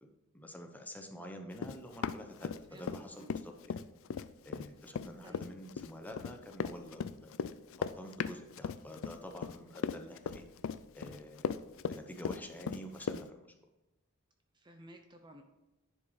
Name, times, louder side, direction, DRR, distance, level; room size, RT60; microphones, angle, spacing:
voice 1, 0.0-3.8 4.4-7.3 7.7-10.5 10.9-11.5 11.9-13.5, equal, 10° left, 3 dB, 0.9 m, -48 dB
Run, 1.6-3.0 3.3-13.2, left 6 dB, 65° left, 0.4 m, -37 dB
voice 2, 2.7-3.3 5.2-5.4 14.5-15.4, right 1 dB, 20° right, 5 dB, 0.6 m, -55 dB
10.5 x 5.1 x 4.8 m, 0.98 s
head